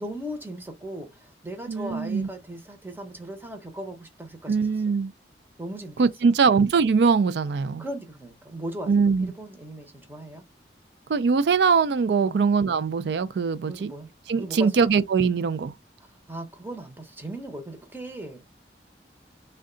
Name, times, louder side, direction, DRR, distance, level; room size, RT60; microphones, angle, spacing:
voice 1, 0.0-5.0 5.6-6.3 7.8-10.4 12.2-12.4 13.7-14.1 14.4-14.9 16.0-18.6, right 1 dB, 10° right, 0.7 m, -38 dB
voice 2, 1.7-2.3 4.5-5.1 6.0-7.8 8.9-9.3 11.1-13.9 14.3-15.7, right 5 dB, 75° right, 0.4 m, -22 dB
3.6 x 2.2 x 3.7 m
head